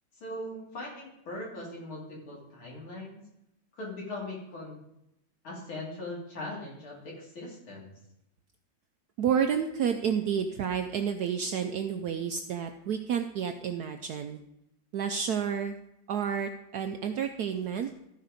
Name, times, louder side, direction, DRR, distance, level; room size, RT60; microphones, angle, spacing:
voice 1, 0.2-3.2 3.7-4.8 5.4-7.9, left 1 dB, 80° left, -4 dB, 3.7 m, -40 dB
voice 2, 9.2-14.4 14.9-15.7 16.1-17.9, right 7 dB, 75° right, 6 dB, 0.9 m, -30 dB
14.0 x 4.6 x 5.1 m, 0.82 s
omnidirectional pair, 2.2 m